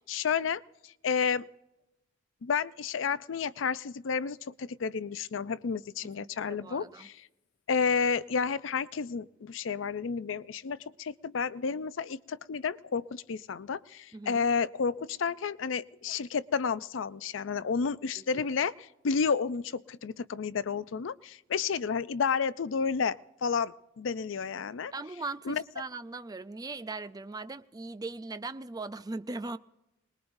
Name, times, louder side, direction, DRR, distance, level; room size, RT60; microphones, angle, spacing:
voice 1, 0.0-1.5 2.4-7.3 7.7-24.9 25.5-25.6, left 6 dB, 75° left, 0.5 m, -31 dB
voice 2, 6.2-7.1 14.1-14.5 18.2-18.5 24.9-29.6, right 3 dB, 20° right, 0.4 m, -39 dB
26.0 x 20.0 x 2.6 m
head